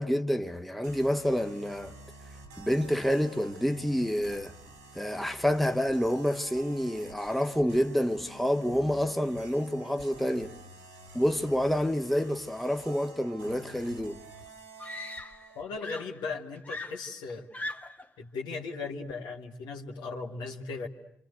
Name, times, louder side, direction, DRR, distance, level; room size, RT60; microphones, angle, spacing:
voice 1, 0.0-1.9 2.6-4.5 4.9-10.5 11.1-14.2, equal, ahead, 1.4 m, -28 dB
sound 1, 0.8-15.6, right 2 dB, 90° right, 3.6 m, -50 dB
Screaming, 14.0-14.1 14.8-15.5 15.8-18.1 19.1-19.4, left 2 dB, 20° left, 1.4 m, -40 dB
voice 2, 15.6-17.5 18.2-20.9, left 4 dB, 70° left, 2.2 m, -37 dB
27.5 x 26.5 x 8.1 m
hypercardioid pair, 45°, 8 cm